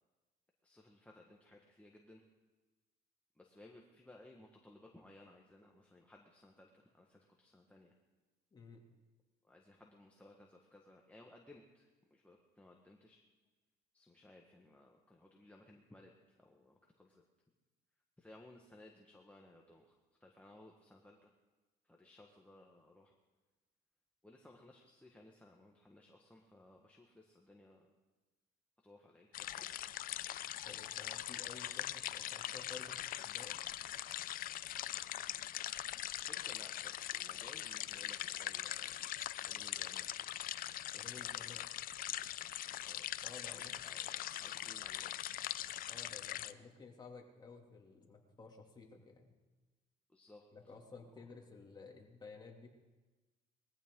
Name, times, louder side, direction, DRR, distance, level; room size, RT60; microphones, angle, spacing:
voice 1, 0.6-2.2 3.3-7.9 9.4-13.2 13.9-17.2 18.2-21.3 21.8-23.1 24.2-27.9 28.8-29.8 36.2-39.1 39.4-40.3 40.9-41.5 42.8-43.1 43.5-45.1 50.1-50.7, left 1 dB, 10° left, -1 dB, 1.5 m, -60 dB
voice 2, 8.5-8.9 30.7-33.6 40.9-41.7 43.2-43.7 45.9-49.3 50.5-52.7, left 4 dB, 25° left, 0 dB, 2.6 m, -54 dB
sound 1, 29.3-46.5, left 12 dB, 60° left, 0.5 m, -42 dB
20.5 x 15.0 x 3.8 m, 1.2 s
cardioid pair, 110°, 17 cm